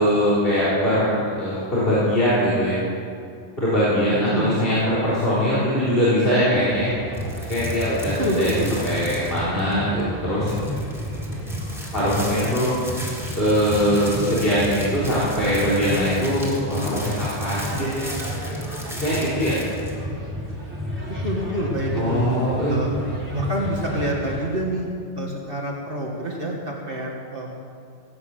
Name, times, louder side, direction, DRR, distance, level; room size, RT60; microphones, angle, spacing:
voice 1, 0.0-2.8 3.6-6.9 7.5-8.5 8.8-10.5 11.9-12.7 13.3-18.1 19.0-19.5 22.0-22.8, equal, 60° left, -10 dB, 4.1 m, -22 dB
voice 2, 4.2-4.6 8.2-8.8 21.2-22.3 22.7-22.9 23.3-24.9 25.2-27.5, right 1 dB, 55° right, -2 dB, 2.2 m, -27 dB
sound 1, 6.7-24.5, left 1 dB, 90° right, 4.6 m, -31 dB
sound 2, 7.1-9.7 10.0-10.1 10.5-20.0, equal, ahead, 2.8 m, -38 dB
18.0 x 8.8 x 8.3 m, 2.5 s
omnidirectional pair, 1.1 m